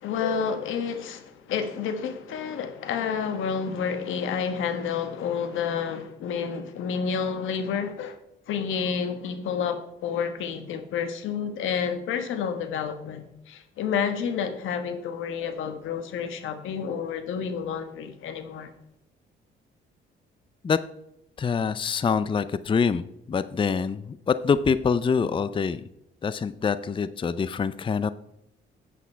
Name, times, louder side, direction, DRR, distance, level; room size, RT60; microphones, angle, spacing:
voice 1, 0.0-8.2 8.5-18.7, left 6 dB, 85° left, 1.3 m, -30 dB
voice 2, 21.4-25.8 26.2-28.1, left 5 dB, 25° left, 0.5 m, -25 dB
8.3 x 8.3 x 4.5 m
cardioid pair, 90°, 20 cm